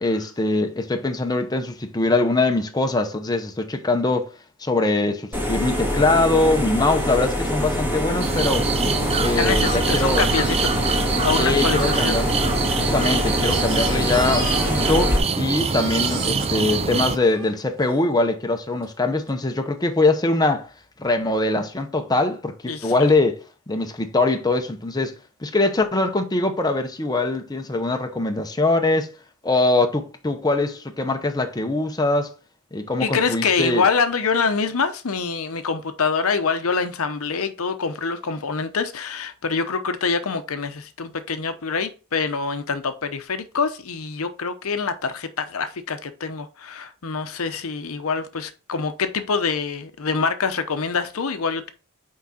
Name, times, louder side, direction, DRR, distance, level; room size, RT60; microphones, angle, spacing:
voice 1, 0.0-4.3 4.6-8.7 9.2-10.3 11.4-12.4 12.7-20.7 21.0-23.4 23.7-25.1 25.4-29.1 29.4-32.3 32.7-33.9, left 2 dB, 20° left, 0.7 m, -22 dB
sound 1, 5.3-15.2, left 1 dB, 10° right, 1.9 m, -24 dB
sound 2, 8.2-17.2, right 5 dB, 30° right, 0.4 m, -24 dB
voice 2, 9.3-12.2 22.7-22.9 33.0-51.7, left 5 dB, 70° left, 0.8 m, -25 dB
Crying sobbing, 12.6-15.2 15.4-18.0 18.8-18.9 19.3-19.4, right 3 dB, 65° right, 2.4 m, -35 dB
6.0 x 4.8 x 4.2 m
head